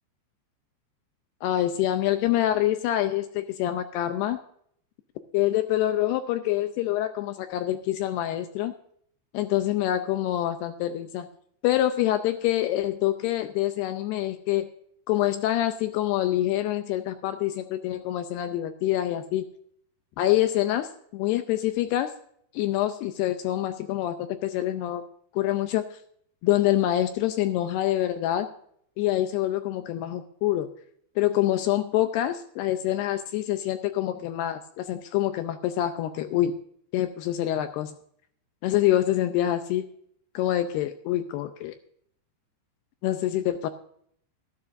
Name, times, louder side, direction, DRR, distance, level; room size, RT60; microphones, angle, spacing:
voice 1, 1.4-4.4 5.3-8.7 9.3-11.3 11.6-14.7 15.1-19.5 20.2-22.1 22.5-25.0 25.3-26.0 26.4-28.5 29.0-30.7 31.2-36.5 36.9-37.9 38.6-39.9 40.3-41.7 43.0-43.7, left 13 dB, 80° left, 9 dB, 2.4 m, -26 dB
13.5 x 12.5 x 2.6 m, 0.65 s
omnidirectional pair, 5.1 m